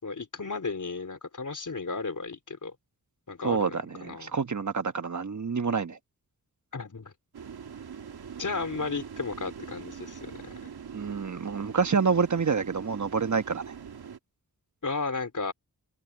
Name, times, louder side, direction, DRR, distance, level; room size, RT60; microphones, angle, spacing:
voice 1, 0.0-2.7 3.3-4.3 6.7-7.1 8.4-10.7 14.8-15.5, left 4 dB, 55° left, 3.5 m, -34 dB
voice 2, 3.4-6.0 10.9-13.6, right 5 dB, 50° right, 1.2 m, -27 dB
sound 1, 7.3-14.2, right 7 dB, 90° right, 1.9 m, -43 dB
cardioid pair, 55°, 37 cm